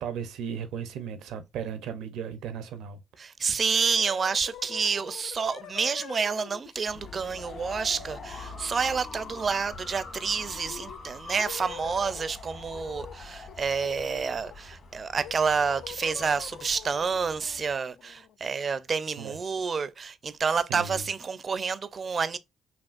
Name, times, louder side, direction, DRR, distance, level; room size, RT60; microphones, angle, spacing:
voice 1, 0.0-3.0 19.2-19.4 20.5-21.0, right 7 dB, 85° right, 0.7 m, -36 dB
voice 2, 3.2-22.4, right 5 dB, 40° right, 0.4 m, -29 dB
sound 1, 3.7-12.3 12.7-13.2 13.5-14.7 15.2-18.9, left 9 dB, 85° left, 0.3 m, -46 dB
sound 2, 6.9-17.7, left 3 dB, 60° left, 1.6 m, -44 dB
5.8 x 2.4 x 2.4 m
cardioid pair, 90°, 0 cm